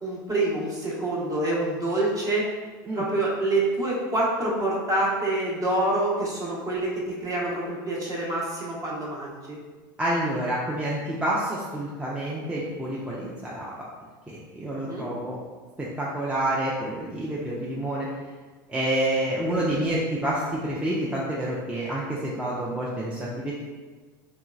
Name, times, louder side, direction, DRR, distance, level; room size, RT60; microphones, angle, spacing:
voice 1, 0.0-2.5 2.9-9.6 14.8-15.1, right 2 dB, 30° right, -4 dB, 1.0 m, -26 dB
voice 2, 10.0-13.7 14.3-15.4 15.8-18.1 18.7-23.5, right 1 dB, 10° right, -6 dB, 0.5 m, -28 dB
3.1 x 2.8 x 2.4 m, 1.4 s
hypercardioid pair, 100°, 11 cm